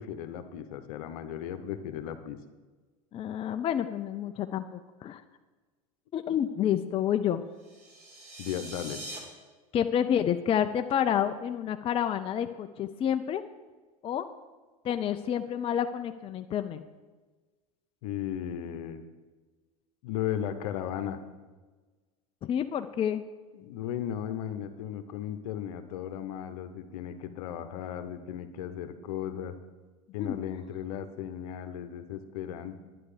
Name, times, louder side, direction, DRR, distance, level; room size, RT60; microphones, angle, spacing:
voice 1, 0.0-2.4 8.4-9.0 18.0-19.0 20.0-21.2 23.5-29.5 30.1-32.8, left 10 dB, 70° left, 9 dB, 1.0 m, -36 dB
voice 2, 3.1-5.2 6.1-7.4 9.7-13.4 14.0-14.3 14.8-16.8 22.4-23.2 30.2-30.4, left 9 dB, 30° left, 8 dB, 0.5 m, -29 dB
sound 1, 7.6-9.2, right 2 dB, 40° right, 3.2 m, -43 dB
9.8 x 9.4 x 5.0 m, 1.3 s
hypercardioid pair, 95°, 19 cm